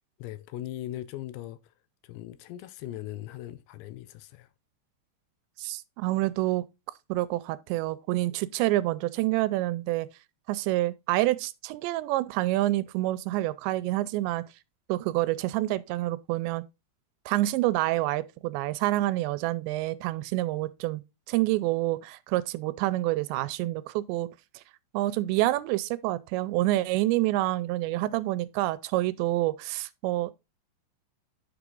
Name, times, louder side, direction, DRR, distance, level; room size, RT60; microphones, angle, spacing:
voice 1, 0.2-1.7 2.0-4.5, left 14 dB, 80° left, 2.8 m, -39 dB
voice 2, 5.6-6.6 7.1-10.1 10.5-14.4 14.9-16.6 17.3-21.0 21.3-24.3 24.9-30.3, right 17 dB, 85° right, 2.8 m, -27 dB
10.0 x 6.0 x 3.8 m
omnidirectional pair, 5.1 m